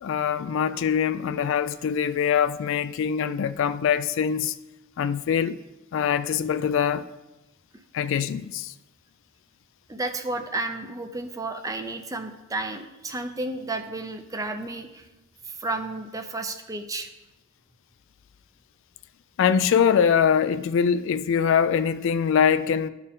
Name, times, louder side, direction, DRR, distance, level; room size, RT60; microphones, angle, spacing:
voice 1, 0.0-4.5 5.0-5.6 5.9-7.1 7.9-8.7 19.4-22.9, left 7 dB, 60° left, 0.3 m, -23 dB
voice 2, 9.9-15.1 15.4-17.1, right 2 dB, 15° right, 0.5 m, -32 dB
12.5 x 4.4 x 3.6 m
head